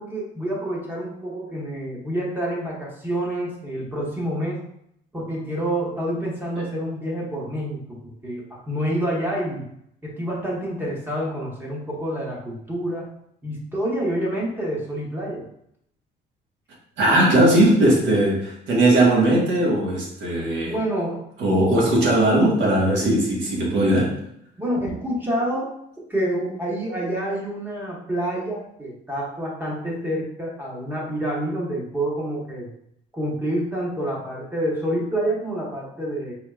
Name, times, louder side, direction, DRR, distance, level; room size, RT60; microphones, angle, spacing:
voice 1, 0.0-4.6 5.1-9.7 10.0-13.1 13.4-15.4 20.6-21.2 24.6-25.7 26.1-32.7 33.1-36.3, right 1 dB, 10° right, -4 dB, 0.9 m, -28 dB
voice 2, 17.0-20.7 21.4-24.2, right 1 dB, 70° right, -3 dB, 1.3 m, -19 dB
4.4 x 3.2 x 2.3 m, 0.73 s
cardioid pair, 165°, 19 cm